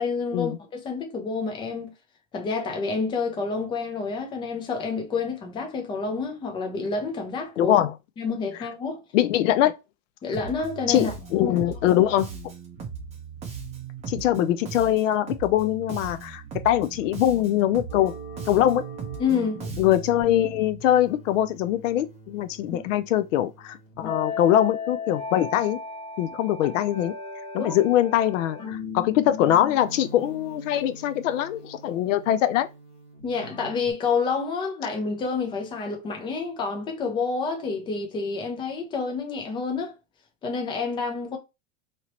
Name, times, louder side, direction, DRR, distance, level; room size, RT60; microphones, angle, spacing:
voice 1, 0.0-1.9 2.3-7.7 8.2-9.0 10.2-11.1 11.4-11.5 19.2-19.6 22.7-22.9 27.6-27.7 33.2-40.0 40.4-41.4, left 4 dB, 15° left, 0.5 m, -28 dB
voice 2, 7.6-7.9 9.1-9.7 10.9-12.3 14.1-18.1 18.5-18.8 19.8-25.8 26.2-27.1 27.5-32.7, left 12 dB, 75° left, 0.5 m, -22 dB
Bass guitar, 10.3-20.2, right 6 dB, 15° right, 0.8 m, -38 dB
sound 1, 17.9-33.9, left 3 dB, 40° left, 1.6 m, -38 dB
3.0 x 2.9 x 2.9 m
supercardioid pair, 150°, 38 cm